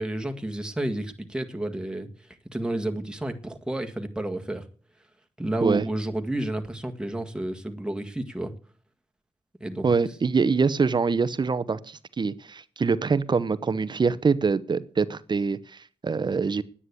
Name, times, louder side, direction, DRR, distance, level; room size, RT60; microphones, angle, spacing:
voice 1, 0.0-2.1 2.5-4.6 5.4-8.5 9.6-9.9, right 1 dB, 5° right, 4 dB, 1.8 m, -30 dB
voice 2, 9.8-16.6, right 5 dB, 45° right, 14 dB, 0.8 m, -24 dB
9.9 x 9.7 x 8.3 m, 0.43 s
cardioid pair, 75°, 11 cm